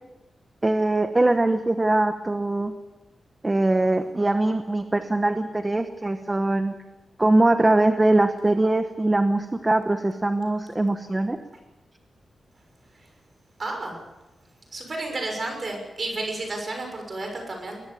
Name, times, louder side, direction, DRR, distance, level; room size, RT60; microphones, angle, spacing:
voice 1, 0.6-2.7 3.4-6.7 7.2-11.4, right 2 dB, 15° right, 7 dB, 1.0 m, -22 dB
voice 2, 13.6-14.0 14.7-17.8, right 2 dB, 35° right, 3 dB, 6.3 m, -31 dB
21.5 x 21.0 x 7.1 m, 1.1 s
wide cardioid pair, 175°, 0 cm